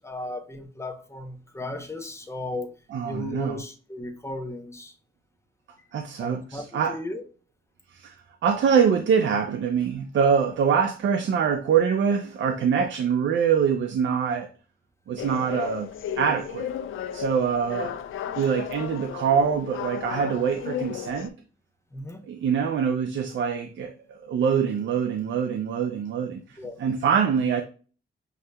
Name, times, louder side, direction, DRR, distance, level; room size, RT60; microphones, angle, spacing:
voice 1, 0.0-2.7 3.0-5.0 6.2-7.2 21.9-22.2 26.5-26.8, left 2 dB, 15° left, 0.7 m, -35 dB
voice 2, 2.9-3.6 5.9-7.0 7.9-8.2 8.4-14.5 15.1-15.9 16.2-16.7 17.1-18.0 18.4-21.3 22.3-27.6, right 7 dB, 70° right, 0.5 m, -24 dB
sound 1, 15.2-21.3, left 9 dB, 85° left, 0.4 m, -34 dB
6.3 x 2.8 x 2.2 m
cardioid pair, 85°, 20 cm